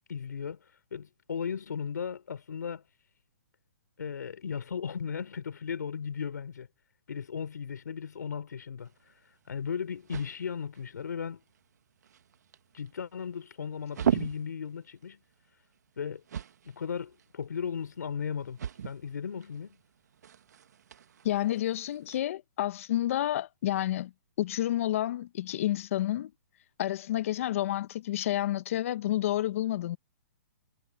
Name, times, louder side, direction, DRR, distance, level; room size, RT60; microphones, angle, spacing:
voice 1, 0.1-0.6 0.9-2.8 4.0-6.7 7.1-8.9 9.5-11.4 12.7-15.2 16.0-16.2 16.7-18.6 18.8-19.8, left 7 dB, 80° left, 4.4 m, -36 dB
sound 1, 8.8-22.2, right 8 dB, 70° right, 1.7 m, -39 dB
voice 2, 21.2-24.1 24.4-26.3 26.8-30.0, left 13 dB, 50° left, 1.1 m, -29 dB
hypercardioid pair, 150°, 9 cm